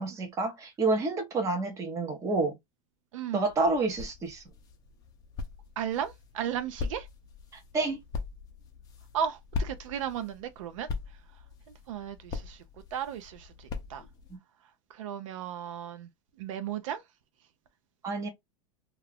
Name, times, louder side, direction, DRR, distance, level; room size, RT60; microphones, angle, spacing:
voice 1, 0.0-2.5 3.3-4.4 7.7-8.0 14.3-14.4 18.0-18.3, right 3 dB, 20° right, 0.7 m, -29 dB
voice 2, 3.1-3.5 5.8-7.1 9.1-10.9 11.9-12.6 12.9-14.0 15.0-16.1 16.4-17.0, right 9 dB, 85° right, 0.6 m, -35 dB
sound 1, 3.4-14.4, left 4 dB, 25° left, 0.5 m, -41 dB
2.3 x 2.3 x 3.4 m
supercardioid pair, 160°, 16 cm